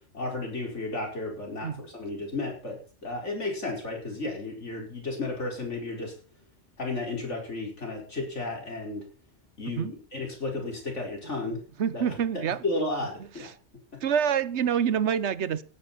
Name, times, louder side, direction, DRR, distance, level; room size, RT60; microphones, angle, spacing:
voice 1, 0.1-6.1 6.8-9.0 9.6-11.6 11.9-13.5 13.9-14.0, left 2 dB, 75° left, 0 dB, 5.2 m, -33 dB
voice 2, 11.8-12.6 13.4-13.5 14.0-15.6, right 8 dB, 70° right, 17 dB, 1.1 m, -26 dB
17.0 x 11.0 x 4.2 m, 0.38 s
omnidirectional pair, 1.2 m